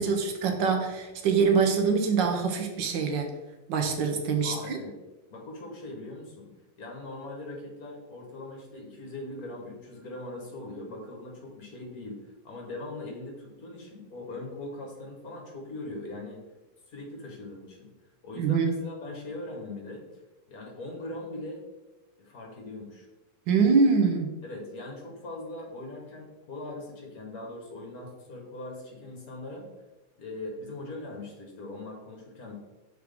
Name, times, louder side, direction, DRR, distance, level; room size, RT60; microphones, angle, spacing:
voice 1, 0.0-3.3 3.7-4.8 18.4-18.7 23.5-24.3, right 5 dB, 90° right, 4 dB, 1.6 m, -24 dB
voice 2, 4.4-4.9 5.3-6.5 6.8-12.2 12.4-16.4 16.9-17.9 18.2-20.1 20.5-21.6 22.2-23.1 24.4-29.7 30.2-32.5, left 2 dB, 55° left, -1 dB, 1.8 m, -40 dB
6.1 x 4.6 x 3.5 m, 1.1 s
omnidirectional pair, 1.9 m